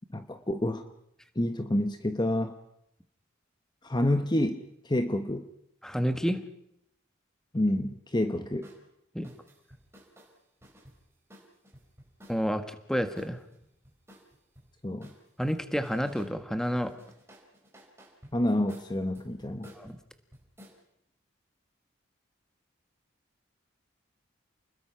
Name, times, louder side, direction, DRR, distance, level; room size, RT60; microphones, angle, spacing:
voice 1, 0.1-0.8 1.3-2.5 3.8-5.5 7.5-8.7 14.8-15.1 18.3-19.7, left 1 dB, 20° left, 8 dB, 1.0 m, -28 dB
voice 2, 5.8-6.4 9.1-9.3 12.3-13.4 15.4-16.9 19.7-20.0, equal, 5° left, 9 dB, 1.4 m, -29 dB
sound 1, 8.6-8.8 9.2-12.6 13.2-14.7 15.0-16.3 16.6-20.8, equal, 15° right, 4.7 m, -54 dB
30.0 x 21.0 x 5.8 m, 0.77 s
head